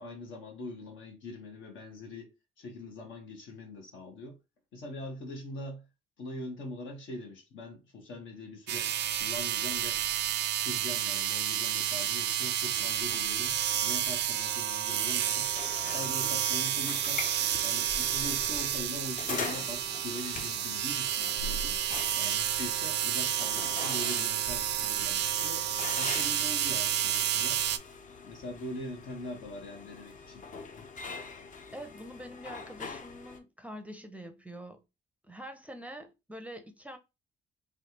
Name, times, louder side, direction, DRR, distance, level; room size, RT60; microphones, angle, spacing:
voice 1, 0.0-4.4 4.7-5.8 6.2-8.9 9.2-10.0 10.3-15.5 15.9-17.3 17.6-21.8 22.2-25.7 26.0-27.6 28.2-30.4, left 1 dB, 75° left, 1.2 m, -42 dB
sound 1, 8.7-27.8, right 10 dB, 60° right, 0.4 m, -30 dB
sound 2, 15.2-33.4, left 4 dB, 40° left, 0.6 m, -43 dB
voice 2, 31.7-34.8 35.2-37.0, equal, 5° right, 0.5 m, -45 dB
3.3 x 2.3 x 2.8 m
cardioid pair, 90°, 20 cm